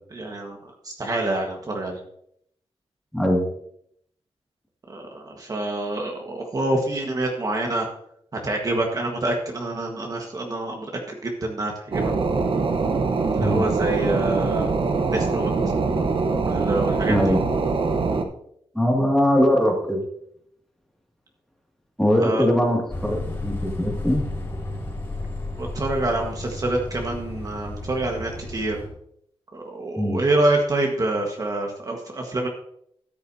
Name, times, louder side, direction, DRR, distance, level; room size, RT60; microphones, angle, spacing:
voice 1, 0.1-2.0 4.9-7.9 8.3-12.1 13.3-14.7 15.1-15.5 16.4-17.3 22.2-22.4 25.6-28.8 29.5-32.5, right 2 dB, 35° right, 1 dB, 1.5 m, -26 dB
voice 2, 3.1-3.4 13.4-13.6 17.1-17.5 18.7-20.0 22.0-24.2 29.9-30.2, equal, 5° left, -1 dB, 2.3 m, -21 dB
sound 1, 11.9-18.2, right 4 dB, 55° right, 1.1 m, -23 dB
sound 2, 22.9-28.9, left 2 dB, 25° left, 4.2 m, -32 dB
13.0 x 10.5 x 2.8 m, 0.70 s
wide cardioid pair, 155°, 10 cm